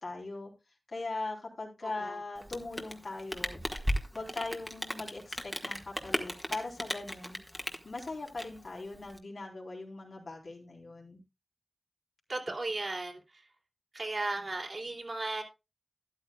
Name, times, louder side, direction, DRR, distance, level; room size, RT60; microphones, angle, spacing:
voice 1, 0.0-0.5 0.9-3.6 4.1-7.4 7.8-11.2, left 3 dB, 75° left, 3.8 m, -40 dB
voice 2, 1.8-2.2 12.3-13.5 13.9-15.4, right 2 dB, 55° right, 3.0 m, -36 dB
Rain, 2.4-9.2, equal, 5° left, 1.6 m, -36 dB
13.0 x 11.0 x 2.3 m
wide cardioid pair, 85°, 0 cm